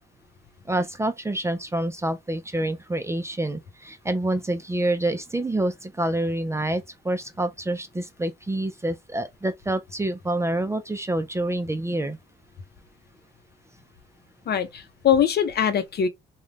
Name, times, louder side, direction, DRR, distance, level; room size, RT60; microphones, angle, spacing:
voice 1, 0.7-12.2, right 1 dB, 15° right, 0.5 m, -27 dB
voice 2, 14.5-16.1, left 8 dB, 55° left, 0.7 m, -22 dB
2.6 x 2.3 x 3.2 m
cardioid pair, 90°, 20 cm